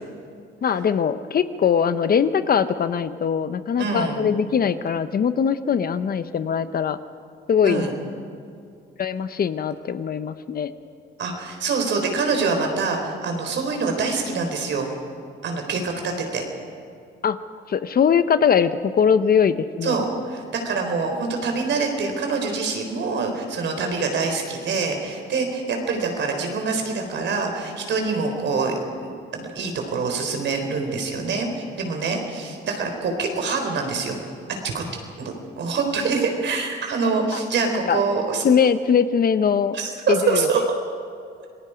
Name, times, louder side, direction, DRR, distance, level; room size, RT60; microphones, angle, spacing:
voice 1, 0.6-7.0 7.5-7.8 9.0-10.7 17.2-17.4 17.7-20.0 37.3-37.4 37.9-38.0 38.4-39.8 40.1-40.5, left 7 dB, 50° left, 12 dB, 0.9 m, -21 dB
voice 2, 3.8-4.2 7.6-7.9 11.2-14.9 15.4-16.4 19.8-34.2 34.6-34.8 35.2-38.4 39.7-40.6, right 4 dB, 65° right, 3 dB, 4.3 m, -25 dB
27.0 x 19.0 x 5.1 m, 2.4 s
cardioid pair, 90°, 20 cm